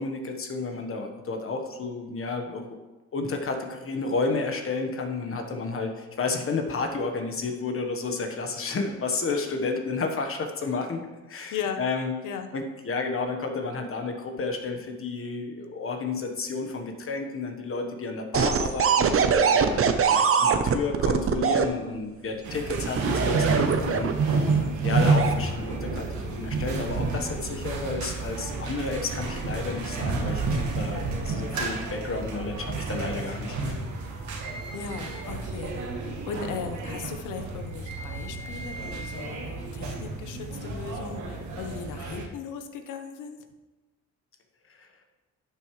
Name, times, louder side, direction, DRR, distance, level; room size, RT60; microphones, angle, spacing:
voice 1, 0.0-2.6 3.1-11.0 11.3-12.1 12.5-24.4 24.8-33.7 44.8-44.9, left 3 dB, 45° left, 4 dB, 1.3 m, -31 dB
voice 2, 11.5-11.8 12.2-12.5 24.5-24.8 34.7-43.5, left 6 dB, 85° left, 7 dB, 1.0 m, -37 dB
sound 1, 18.3-21.7 22.7-24.3 25.0-25.3, right 6 dB, 45° right, 0.8 m, -22 dB
sound 2, 22.4-42.3, right 3 dB, 70° right, 1.5 m, -30 dB
11.5 x 6.8 x 3.2 m, 1.1 s
cardioid pair, 90°, 30 cm